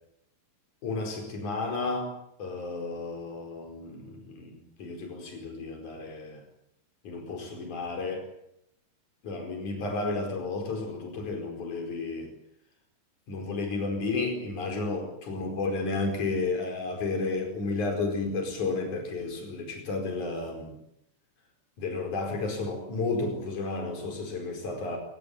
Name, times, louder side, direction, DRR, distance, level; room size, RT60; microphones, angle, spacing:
voice 1, 0.8-2.1 2.4-6.4 7.0-8.3 9.2-12.3 13.3-20.7 21.8-25.0, left 3 dB, 70° left, 3 dB, 6.3 m, -32 dB
27.0 x 17.0 x 9.7 m, 0.78 s
omnidirectional pair, 3.6 m